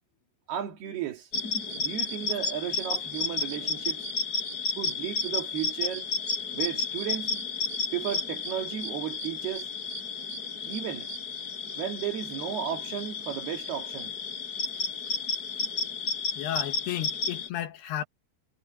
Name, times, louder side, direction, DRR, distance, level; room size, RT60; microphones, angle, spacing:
voice 1, 0.5-1.3 1.8-4.1 4.8-6.1 6.5-7.4 7.9-9.7 10.6-11.1 11.8-14.2, right 10 dB, 70° right, 4.2 m, -34 dB
sound 1, 1.3-17.5, left 4 dB, 20° left, 4.8 m, -32 dB
voice 2, 16.4-18.0, left 12 dB, 80° left, 3.2 m, -33 dB
omnidirectional pair, 4.7 m